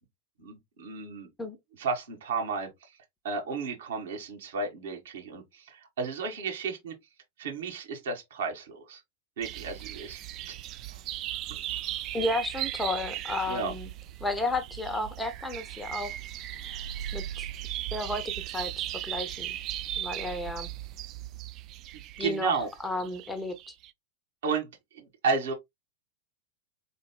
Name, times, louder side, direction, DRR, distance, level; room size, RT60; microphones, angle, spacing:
voice 1, 0.4-1.3 1.8-2.7 3.2-6.9 7.4-9.0 9.4-10.2 11.5-11.8 13.5-13.7 21.9-22.7 24.4-24.7 24.9-25.5, right 4 dB, 60° right, 2.0 m, -33 dB
sound 1, 9.4-23.9, right 12 dB, 35° right, 0.4 m, -37 dB
voice 2, 12.1-13.9 14.2-16.1 17.1-17.5 17.9-19.6 20.0-20.7 22.2-23.7, left 2 dB, 5° left, 0.8 m, -33 dB
4.7 x 3.9 x 2.2 m
figure-of-eight pair, 90°, 0 cm